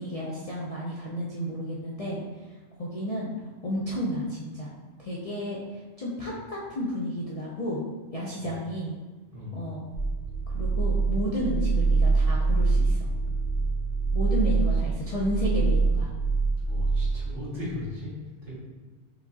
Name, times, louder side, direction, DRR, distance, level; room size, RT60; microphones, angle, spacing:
voice 1, 0.0-2.4 2.8-3.3 3.6-4.7 5.0-7.8 8.1-8.9 9.5-9.8 10.5-13.1 14.1-16.1, equal, 40° left, -6 dB, 0.5 m, -32 dB
voice 2, 9.3-9.6 14.2-14.6 16.7-18.6, left 2 dB, 50° right, -8 dB, 1.8 m, -38 dB
sound 1, 9.9-17.1, right 3 dB, 65° left, 1.1 m, -25 dB
4.8 x 3.4 x 2.7 m, 1.3 s
omnidirectional pair, 1.2 m